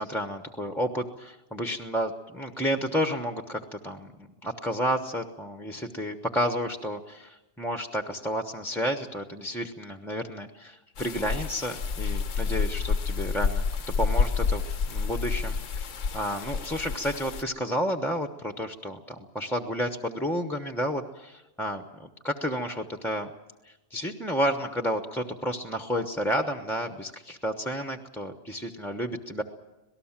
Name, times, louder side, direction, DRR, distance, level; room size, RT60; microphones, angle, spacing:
voice 1, 0.0-4.1 4.4-13.6 14.0-14.6 14.9-15.9 16.1-23.3 23.6-29.4, equal, ahead, 7 dB, 0.9 m, -31 dB
sound 1, 11.0-17.4, left 5 dB, 85° left, 1.3 m, -29 dB
26.0 x 18.5 x 7.4 m, 1.1 s
omnidirectional pair, 1.3 m